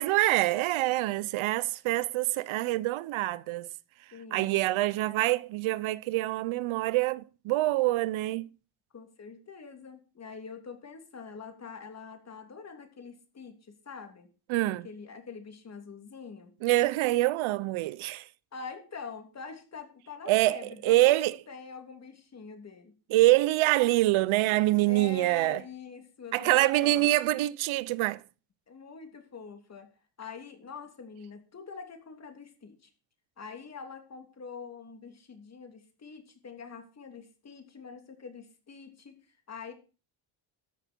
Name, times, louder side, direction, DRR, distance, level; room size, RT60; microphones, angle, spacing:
voice 1, 0.0-3.7 4.3-8.5 14.5-14.8 16.6-18.2 20.3-20.6 20.8-21.3 23.1-25.6 26.3-28.2, right 17 dB, 85° right, 0.8 m, -25 dB
voice 2, 4.1-4.6 8.9-14.3 14.6-16.5 18.5-22.9 24.8-27.4 28.7-29.9 30.2-32.9 33.4-39.2 39.5-39.7, left 5 dB, 35° left, 3.1 m, -45 dB
13.5 x 10.5 x 4.5 m
cardioid pair, 135°, 47 cm